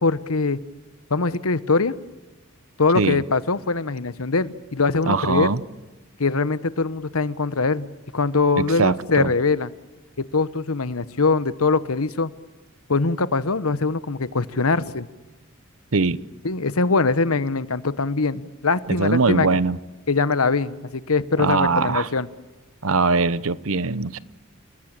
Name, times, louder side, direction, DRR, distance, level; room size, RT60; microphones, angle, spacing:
voice 1, 0.0-0.6 1.1-1.9 2.8-5.5 6.2-7.9 8.1-9.7 10.3-12.3 12.9-15.1 16.4-19.5 20.1-22.3, left 4 dB, 90° left, 15 dB, 1.2 m, -22 dB
voice 2, 5.1-5.6 8.6-9.3 15.9-16.2 18.9-19.8 21.4-22.1 22.8-24.2, right 4 dB, 75° right, 17 dB, 0.9 m, -21 dB
29.5 x 20.0 x 8.9 m, 1.1 s
head